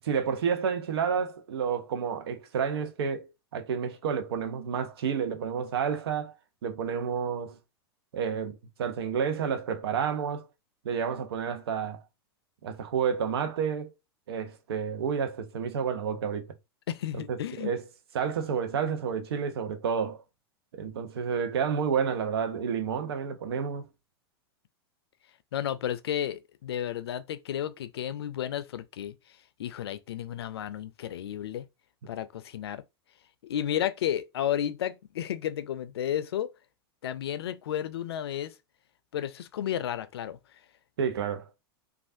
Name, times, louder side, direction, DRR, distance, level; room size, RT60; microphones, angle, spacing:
voice 1, 0.0-6.3 6.6-7.6 8.1-10.5 10.8-12.0 12.6-13.9 14.3-16.5 17.1-17.8 18.1-20.2 20.7-23.9 41.0-41.5, right 7 dB, 75° right, 0.7 m, -30 dB
voice 2, 16.9-17.7 25.5-29.1 29.6-31.6 32.1-32.8 33.4-36.5 37.0-38.5 39.1-40.4, left 10 dB, 80° left, 0.4 m, -32 dB
3.2 x 2.4 x 2.6 m
hypercardioid pair, 105°, 13 cm